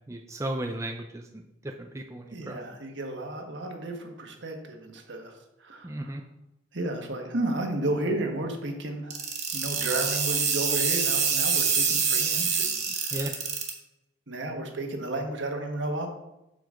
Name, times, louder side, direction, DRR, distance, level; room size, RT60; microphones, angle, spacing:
voice 1, 0.1-2.6 5.8-6.2 12.9-13.3, right 1 dB, 15° right, 3 dB, 0.4 m, -35 dB
voice 2, 2.3-6.1 6.7-9.2 9.5-13.3 14.3-16.1, right 2 dB, 65° right, 3 dB, 1.4 m, -33 dB
sound 1, 9.1-13.7, right 6 dB, 35° right, 1.5 m, -25 dB
7.7 x 7.0 x 3.8 m, 0.90 s
head